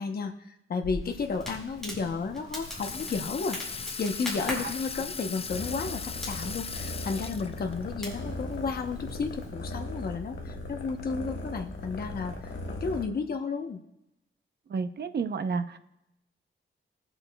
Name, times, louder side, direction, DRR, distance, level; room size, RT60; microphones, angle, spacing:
voice 1, 0.0-3.6 4.0-12.3 12.8-13.8, left 4 dB, 50° left, 4 dB, 0.8 m, -32 dB
Crackle, 0.8-9.5, left 1 dB, ahead, 4.3 m, -41 dB
Water tap faucet / Sink (filling or washing), 2.6-7.8, left 5 dB, 30° left, 0.4 m, -38 dB
sound 1, 5.5-13.0, left 2 dB, 70° left, 1.5 m, -38 dB
voice 2, 14.7-15.8, right 5 dB, 55° right, 10 dB, 0.6 m, -31 dB
20.5 x 8.0 x 2.2 m, 0.87 s
wide cardioid pair, 150°, 21 cm